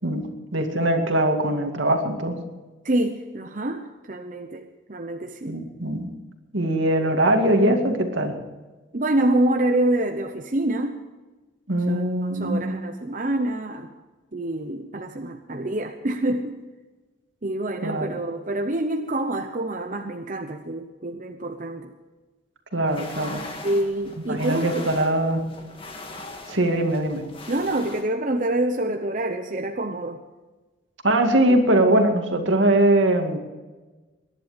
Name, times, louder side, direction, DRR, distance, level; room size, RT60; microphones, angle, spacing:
voice 1, 0.0-2.4 5.5-6.1 6.5-8.4 11.7-12.8 17.8-18.1 22.7-23.4 24.2-25.5 26.5-27.2 31.0-33.4, right 1 dB, 75° right, 4 dB, 2.3 m, -21 dB
voice 2, 2.8-5.6 8.9-11.0 11.9-13.9 14.3-16.6 17.4-21.9 23.6-24.9 27.5-30.2, right 1 dB, 40° right, 5 dB, 0.8 m, -26 dB
sound 1, 22.9-28.0, left 2 dB, 30° left, 1.9 m, -40 dB
21.5 x 11.0 x 5.2 m, 1.2 s
head